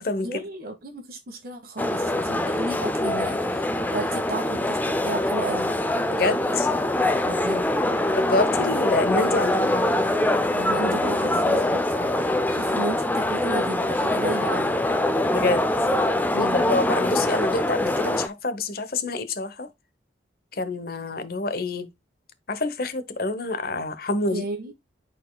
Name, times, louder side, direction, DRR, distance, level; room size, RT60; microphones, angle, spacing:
voice 1, 0.2-5.8 7.2-7.7 8.7-8.9 10.5-14.9 16.3-16.7 24.3-24.7, right 2 dB, 50° right, 1.2 m, -34 dB
sound 1, 1.8-18.3, left 1 dB, 10° left, 0.4 m, -24 dB
voice 2, 6.1-6.7 8.2-9.7 15.3-15.6 16.4-19.7 20.5-21.9 22.5-24.4, left 3 dB, 50° left, 0.9 m, -27 dB
11.5 x 4.2 x 2.2 m
head